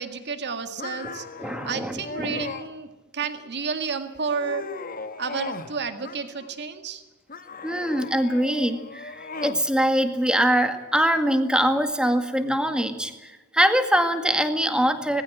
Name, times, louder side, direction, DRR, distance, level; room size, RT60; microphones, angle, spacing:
voice 1, 0.0-1.3 1.6-2.9 3.1-4.7 5.2-7.0, right 5 dB, 55° right, 8 dB, 2.0 m, -31 dB
sound 1, 0.8-2.7 3.2-3.7 4.1-5.7 6.0-6.7 7.3-9.6, left 4 dB, 40° left, 1.4 m, -37 dB
voice 2, 1.4-2.4 7.6-15.2, equal, 5° right, 7 dB, 2.0 m, -23 dB
19.5 x 16.5 x 9.1 m, 1.2 s
head